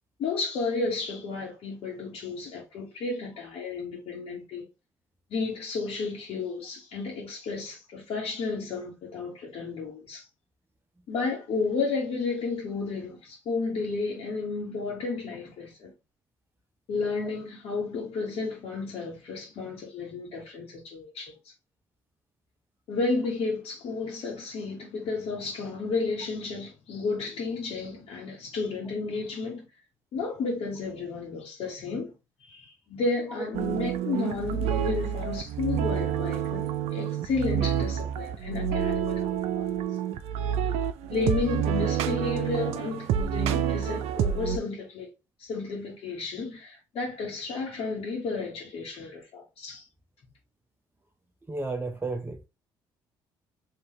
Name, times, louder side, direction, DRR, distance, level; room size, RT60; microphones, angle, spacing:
voice 1, 0.2-4.7 5.3-10.3 11.1-15.9 16.9-21.5 22.9-29.7 30.1-32.1 32.4-39.7 41.1-45.1 45.4-49.9, left 4 dB, 60° left, 1.5 m, -32 dB
sound 1, 33.5-44.6, right 9 dB, 70° right, 0.4 m, -28 dB
voice 2, 51.5-52.5, right 3 dB, 15° right, 0.7 m, -32 dB
4.0 x 2.8 x 3.1 m
hypercardioid pair, 55°, 11 cm